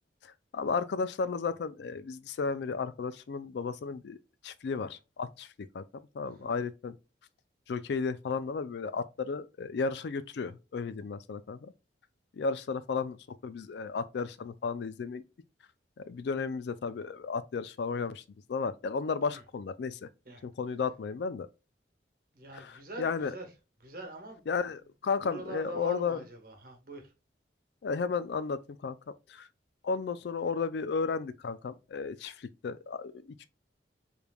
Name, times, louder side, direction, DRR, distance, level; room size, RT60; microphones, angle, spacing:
voice 1, 0.2-4.2 4.4-5.9 6.1-6.9 7.7-11.7 12.3-15.2 16.0-18.2 18.5-20.1 20.4-21.5 22.5-23.3 24.5-26.2 27.8-29.0 29.3-29.5 29.8-33.5, left 5 dB, 65° left, 0.3 m, -34 dB
voice 2, 6.2-6.5 19.3-19.4 20.2-20.4 22.3-23.5 23.8-24.5 25.2-27.1, right 2 dB, 50° right, 1.1 m, -44 dB
5.0 x 3.2 x 2.2 m
head